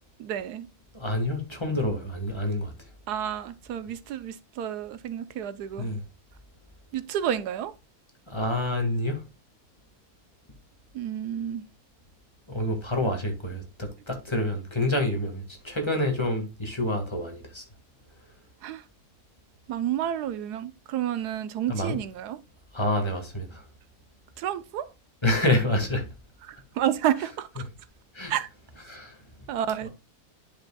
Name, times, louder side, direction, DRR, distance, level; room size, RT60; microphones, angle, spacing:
voice 1, 0.2-0.7 3.1-5.9 6.9-7.7 10.9-11.7 18.6-18.8 19.7-22.4 24.4-24.9 26.4-27.7 28.3-28.5 29.5-29.9, right 10 dB, 85° right, 1.3 m, -30 dB
voice 2, 0.9-2.7 5.8-6.0 8.3-9.2 12.5-17.6 21.7-22.0 22.7-23.6 25.2-26.1 28.1-28.3 28.9-29.2, left 1 dB, 20° left, 1.7 m, -27 dB
10.5 x 5.2 x 2.3 m
omnidirectional pair, 1.6 m